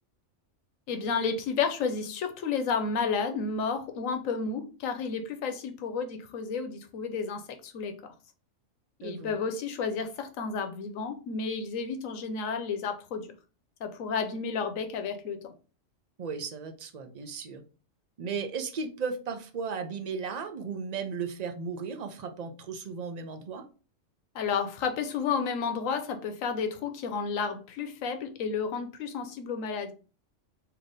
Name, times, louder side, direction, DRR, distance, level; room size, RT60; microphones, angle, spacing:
voice 1, 0.9-8.0 9.0-13.3 13.8-15.5 24.3-29.9, left 5 dB, 90° left, 1.1 m, -31 dB
voice 2, 9.0-9.3 16.2-17.6 18.2-23.6, right 5 dB, 45° right, 0.5 m, -35 dB
3.3 x 2.8 x 3.9 m
omnidirectional pair, 1.3 m